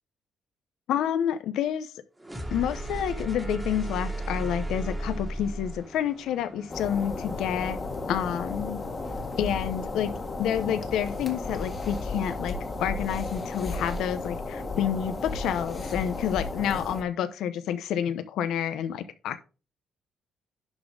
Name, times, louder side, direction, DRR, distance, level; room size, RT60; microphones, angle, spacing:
voice 1, 0.9-1.9 2.5-7.8 8.1-8.8 9.4-10.1 10.4-12.5 12.8-19.4, left 9 dB, 80° left, 12 dB, 0.8 m, -29 dB
sound 1, 2.2-8.0, right 1 dB, 5° right, 1.4 m, -35 dB
sound 2, 6.7-17.0, left 3 dB, 25° left, 1.6 m, -34 dB
11.0 x 4.3 x 4.8 m, 0.33 s
cardioid pair, 160°, 0 cm